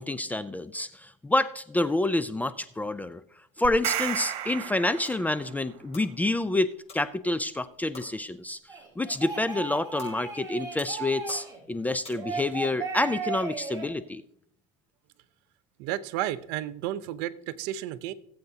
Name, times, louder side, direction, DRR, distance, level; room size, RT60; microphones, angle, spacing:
voice 1, 0.0-3.2 3.6-8.6 9.0-14.2, left 2 dB, 10° left, 13 dB, 0.4 m, -28 dB
sound 1, 3.6-5.6, right 12 dB, 85° right, 1.2 m, -33 dB
sound 2, 4.3-12.6, left 3 dB, 35° left, 5.5 m, -52 dB
sound 3, 8.7-11.6 12.1-13.9, right 4 dB, 20° right, 3.3 m, -36 dB
voice 2, 15.8-18.1, right 13 dB, 65° right, 14 dB, 0.8 m, -32 dB
18.5 x 7.9 x 2.8 m, 0.68 s
supercardioid pair, 125°, 18 cm